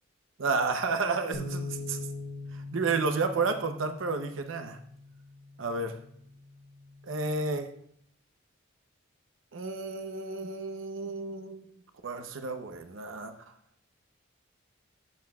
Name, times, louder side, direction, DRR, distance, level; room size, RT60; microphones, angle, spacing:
voice 1, 0.4-2.0 2.5-4.8 5.6-6.0 7.0-7.7 9.5-11.7 12.0-13.3, right 4 dB, 70° right, 7 dB, 0.7 m, -31 dB
sound 1, 1.3-7.6, left 2 dB, 70° left, 3.7 m, -42 dB
12.0 x 8.3 x 2.3 m, 0.71 s
head